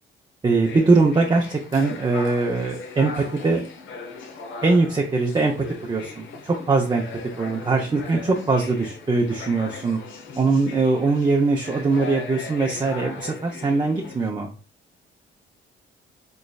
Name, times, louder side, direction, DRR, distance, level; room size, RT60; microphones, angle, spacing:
voice 1, 0.4-3.6 4.6-7.0 7.4-10.0 10.3-14.5, right 3 dB, 20° right, 0 dB, 0.6 m, -21 dB
sound 1, 0.6-14.3, left 4 dB, 75° left, 0.8 m, -38 dB
3.9 x 3.1 x 2.3 m, 0.38 s
cardioid pair, 90°, 20 cm